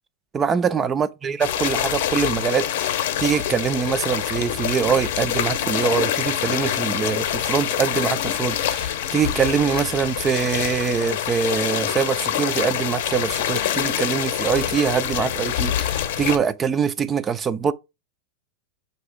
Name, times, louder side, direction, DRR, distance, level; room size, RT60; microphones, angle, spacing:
voice 1, 0.3-17.7, right 6 dB, 20° right, 0.3 m, -24 dB
sound 1, 1.4-16.4, left 10 dB, 65° left, 0.6 m, -25 dB
5.8 x 2.7 x 3.3 m
supercardioid pair, 140°, 0 cm